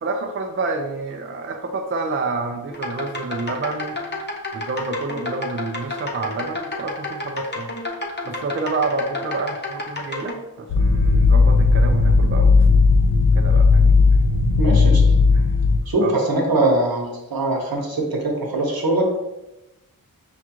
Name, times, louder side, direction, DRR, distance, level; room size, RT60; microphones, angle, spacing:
voice 1, 0.0-4.0 4.5-7.7 8.2-12.7 13.4-14.2 15.3-15.5 16.0-16.2, right 3 dB, 35° right, 3 dB, 0.4 m, -28 dB
sound 1, 2.7-10.3, left 2 dB, 30° left, 0.7 m, -30 dB
sound 2, 10.7-15.8, left 4 dB, 65° left, 0.5 m, -15 dB
voice 2, 14.6-15.0 15.9-19.2, right 2 dB, 70° right, 0 dB, 1.0 m, -22 dB
6.1 x 2.4 x 2.9 m, 0.94 s
wide cardioid pair, 85°, 37 cm